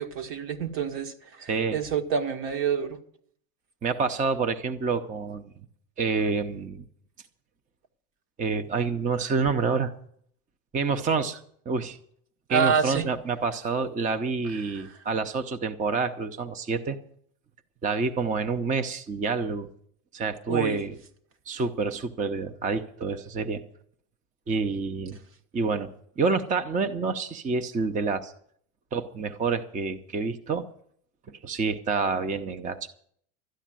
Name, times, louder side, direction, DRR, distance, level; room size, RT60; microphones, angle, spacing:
voice 1, 0.0-3.0 12.5-13.1 14.7-14.9 20.5-20.8, right 6 dB, 60° right, 1.9 m, -28 dB
voice 2, 1.5-1.8 3.8-5.5 6.0-6.8 8.4-9.9 10.7-12.0 12.5-17.0 17.8-19.7 20.1-21.0 21.5-23.6 24.5-25.2 25.5-25.9 26.2-28.3 28.9-30.7 31.3-32.9, right 4 dB, 20° right, 0.7 m, -28 dB
13.0 x 9.9 x 7.5 m
hypercardioid pair, 110°, 42 cm